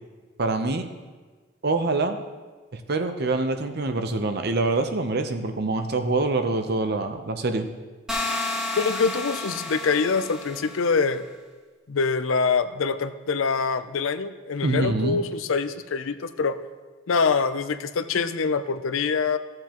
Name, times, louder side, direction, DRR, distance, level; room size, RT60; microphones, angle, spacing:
voice 1, 0.4-0.9 1.6-2.2 2.7-7.7 14.6-15.2, right 3 dB, 55° right, 7 dB, 0.7 m, -25 dB
sound 1, 8.1-11.0, left 2 dB, 5° right, 1.4 m, -31 dB
voice 2, 8.8-11.2 11.9-16.6 17.1-19.4, left 5 dB, 80° left, 11 dB, 0.5 m, -24 dB
14.5 x 7.7 x 3.0 m, 1.4 s
head